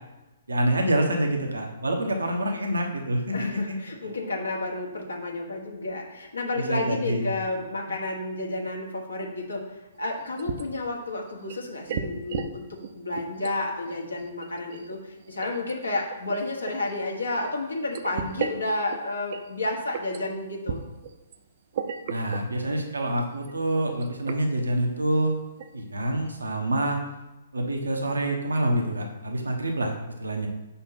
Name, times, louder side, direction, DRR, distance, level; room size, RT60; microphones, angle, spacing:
voice 1, 0.5-3.8 4.0-4.1 6.6-7.3 22.1-25.4 25.7-27.0 27.5-30.5, right 1 dB, 85° right, 2 dB, 1.1 m, -26 dB
voice 2, 3.3-9.7 10.0-20.8, left 2 dB, 85° left, 0 dB, 1.4 m, -31 dB
sound 1, 10.1-10.8 11.2-12.5 12.8-13.5 13.9-17.5 17.9-19.5 19.9-20.2 20.7-21.4 21.7-22.5 22.9-23.0 23.3-23.5 23.9-24.4 24.9-25.0 25.4-25.7 26.1-26.2, right 7 dB, 55° right, 0.6 m, -35 dB
5.7 x 4.3 x 5.6 m, 1.0 s
figure-of-eight pair, 125°, 0 cm